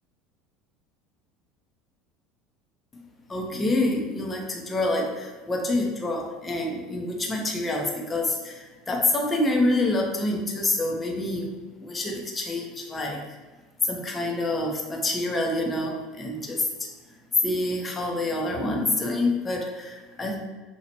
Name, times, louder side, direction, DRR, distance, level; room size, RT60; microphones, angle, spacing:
voice 1, 3.3-13.2 13.8-16.9 17.4-20.4, left 2 dB, 25° left, 0 dB, 1.0 m, -27 dB
5.9 x 2.8 x 3.0 m, 1.3 s
hypercardioid pair, 75°, 0 cm